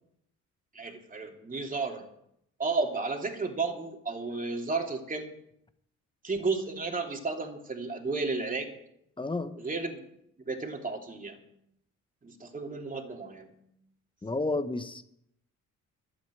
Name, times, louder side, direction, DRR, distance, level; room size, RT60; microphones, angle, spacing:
voice 1, 0.7-2.0 2.6-5.3 6.2-8.8 9.6-10.0 10.5-11.4 12.2-13.5, right 3 dB, 25° right, 2 dB, 2.9 m, -33 dB
voice 2, 9.2-9.5 14.2-15.0, left 2 dB, 15° left, 10 dB, 1.3 m, -31 dB
12.0 x 8.9 x 9.1 m, 0.76 s
cardioid pair, 90°, 30 cm